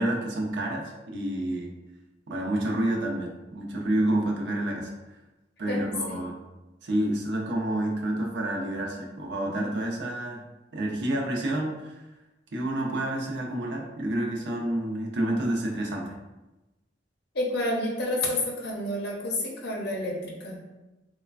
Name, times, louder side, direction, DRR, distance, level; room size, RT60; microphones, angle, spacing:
voice 1, 0.0-1.7 2.3-4.9 5.6-6.4 6.8-12.0 12.5-16.1, right 1 dB, 70° right, 0 dB, 0.5 m, -29 dB
voice 2, 5.7-6.2 17.3-20.6, left 1 dB, 65° left, -2 dB, 0.6 m, -29 dB
3.1 x 2.1 x 2.3 m, 1.0 s
head